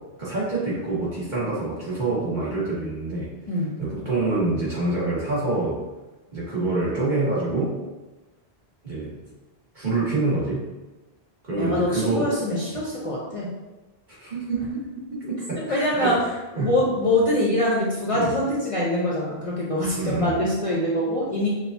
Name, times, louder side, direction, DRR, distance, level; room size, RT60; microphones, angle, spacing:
voice 1, 0.2-3.3 3.8-5.8 6.3-7.7 8.8-9.2 9.7-10.7 11.4-12.3 14.1-16.1 16.6-16.7 18.1-18.3 19.9-20.4, right 2 dB, 50° right, -8 dB, 1.7 m, -26 dB
voice 2, 11.6-13.5 15.7-16.1 16.5-21.5, left 1 dB, 40° left, -5 dB, 0.7 m, -24 dB
5.9 x 2.6 x 2.6 m, 1.1 s
omnidirectional pair, 1.0 m